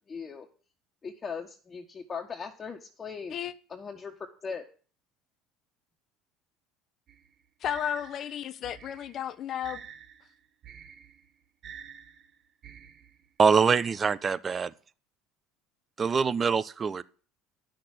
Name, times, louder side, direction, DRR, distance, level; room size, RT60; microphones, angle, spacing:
voice 1, 0.1-0.5 1.0-3.3 3.7-4.7, left 5 dB, 30° left, 1.5 m, -39 dB
sound 1, 7.1-13.4, right 8 dB, 50° right, 1.2 m, -49 dB
voice 2, 7.6-9.8, left 10 dB, 50° left, 0.9 m, -33 dB
voice 3, 13.4-14.7 16.0-17.0, right 5 dB, 30° right, 0.7 m, -24 dB
10.0 x 6.5 x 8.0 m
hypercardioid pair, 80°, 0 cm